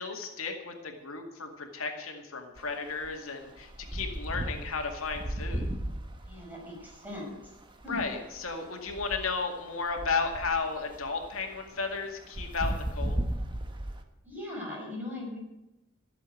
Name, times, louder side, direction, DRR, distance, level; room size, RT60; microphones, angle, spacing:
voice 1, 0.0-5.7 7.9-13.2, left 4 dB, 85° left, 3 dB, 2.2 m, -34 dB
sound 1, 2.6-2.7 3.0-14.0, right 1 dB, 25° right, 1.4 m, -36 dB
voice 2, 6.3-7.3 7.8-8.0 14.2-15.4, left 2 dB, 10° right, -3 dB, 5.8 m, -39 dB
15.5 x 7.4 x 9.1 m, 0.96 s
head